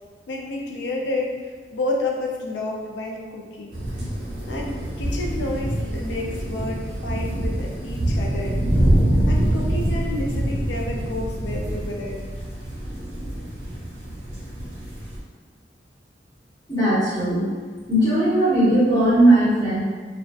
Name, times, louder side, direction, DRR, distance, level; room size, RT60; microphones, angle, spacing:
voice 1, 0.3-3.8 4.5-8.8 9.3-12.2, left 2 dB, 75° left, 0 dB, 0.4 m, -30 dB
sound 1, 3.7-15.2, right 1 dB, 80° right, 0.7 m, -25 dB
voice 2, 16.7-17.5 17.9-19.8, right 1 dB, 25° left, -12 dB, 1.1 m, -18 dB
2.5 x 2.2 x 2.3 m, 1.6 s
head